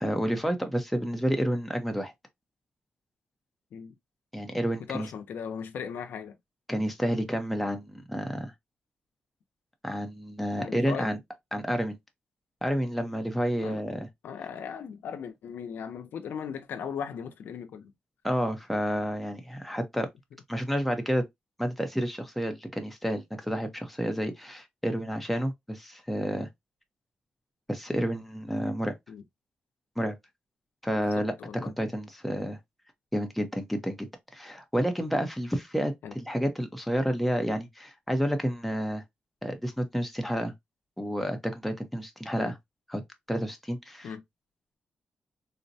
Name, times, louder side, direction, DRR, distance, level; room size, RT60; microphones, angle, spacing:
voice 1, 0.0-2.1 4.3-5.1 6.7-8.5 9.8-11.2 11.5-12.0 12.6-14.1 18.2-20.1 20.5-21.2 21.6-26.5 27.7-28.9 30.0-30.2 30.8-31.3 31.6-32.6 33.1-39.0 39.4-40.5 41.0-42.6 42.9-43.0 43.3-44.1, equal, ahead, 0.7 m, -30 dB
voice 2, 4.9-6.4 10.6-11.2 13.6-13.8 14.2-17.9 29.1-29.2 31.1-31.7 36.0-36.1 42.4-42.5 44.0-44.2, left 7 dB, 90° left, 0.6 m, -38 dB
3.9 x 2.1 x 2.7 m
cardioid pair, 105°, 3 cm